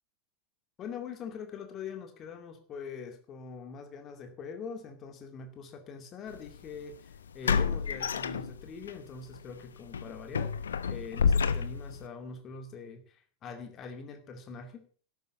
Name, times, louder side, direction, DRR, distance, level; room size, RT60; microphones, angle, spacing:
voice 1, 0.8-10.6 10.9-14.9, left 5 dB, 30° left, 6 dB, 2.3 m, -43 dB
sound 1, 6.3-6.5 7.4-8.9 9.3-9.5 9.9-12.0, left 6 dB, 70° left, 1.0 m, -29 dB
12.5 x 11.0 x 7.0 m, 0.43 s
figure-of-eight pair, 90°, 0 cm